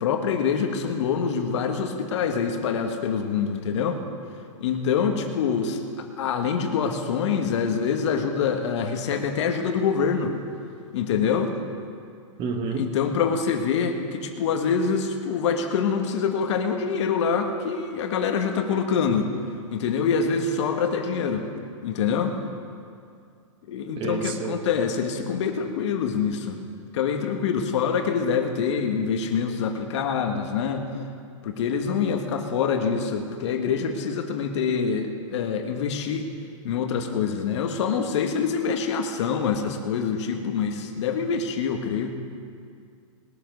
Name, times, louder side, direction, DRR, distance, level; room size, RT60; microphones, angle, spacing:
voice 1, 0.0-4.0 4.6-10.4 10.9-11.5 12.7-19.3 19.7-21.5 21.8-22.4 23.7-26.6 26.9-30.9 31.4-36.3 36.6-42.2, left 6 dB, 60° left, 5 dB, 1.6 m, -25 dB
voice 2, 12.4-12.9 24.0-24.6, right 5 dB, 30° right, 5 dB, 1.5 m, -29 dB
20.5 x 7.7 x 5.3 m, 2.3 s
hypercardioid pair, 135°, 17 cm